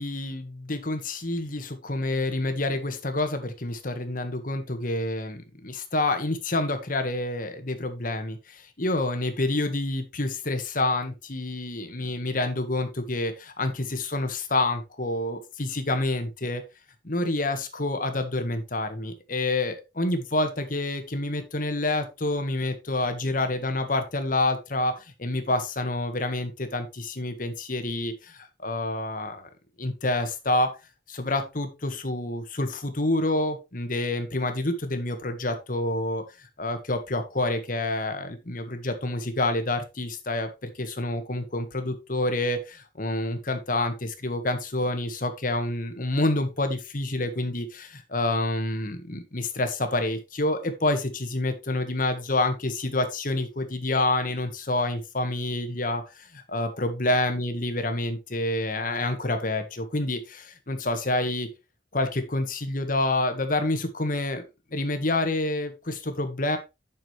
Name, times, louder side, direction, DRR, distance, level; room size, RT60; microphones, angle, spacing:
voice 1, 0.0-16.6 17.0-24.9 25.2-29.5 29.8-30.7 31.1-36.2 36.6-56.0 56.5-61.5 61.9-64.4 64.7-66.6, left 2 dB, 50° left, 7 dB, 1.7 m, -28 dB
9.5 x 6.6 x 3.3 m, 0.25 s
head